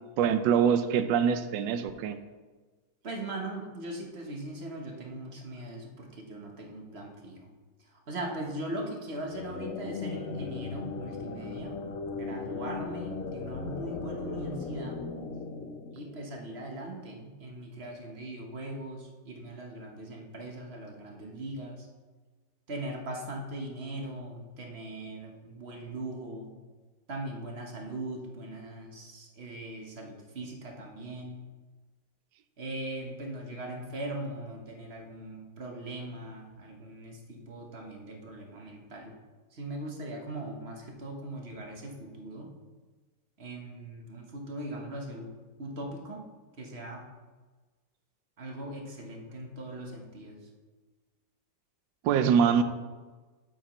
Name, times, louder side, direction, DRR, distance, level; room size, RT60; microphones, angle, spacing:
voice 1, 0.2-2.2 52.0-52.6, right 7 dB, 80° right, 11 dB, 1.3 m, -24 dB
voice 2, 3.0-7.5 7.9-11.8 12.1-15.0 15.9-21.9 22.7-26.5 27.1-31.4 32.6-39.2 39.5-42.5 43.4-45.3 45.6-46.3 46.6-47.1 48.4-50.5, right 1 dB, 40° right, 1 dB, 1.1 m, -40 dB
sound 1, 9.1-16.7, left 4 dB, 65° left, 0.7 m, -38 dB
8.3 x 8.1 x 3.1 m, 1.3 s
omnidirectional pair, 2.0 m